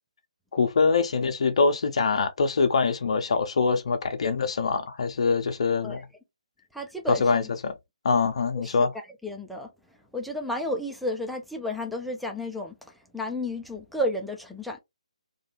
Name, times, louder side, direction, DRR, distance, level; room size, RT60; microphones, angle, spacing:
voice 1, 0.5-6.0 7.2-7.7 8.0-8.9, left 4 dB, 55° left, 0.5 m, -24 dB
voice 2, 6.7-7.3 8.6-9.7 10.1-14.8, left 1 dB, ahead, 0.4 m, -32 dB
2.3 x 2.3 x 2.9 m
figure-of-eight pair, 140°, 4 cm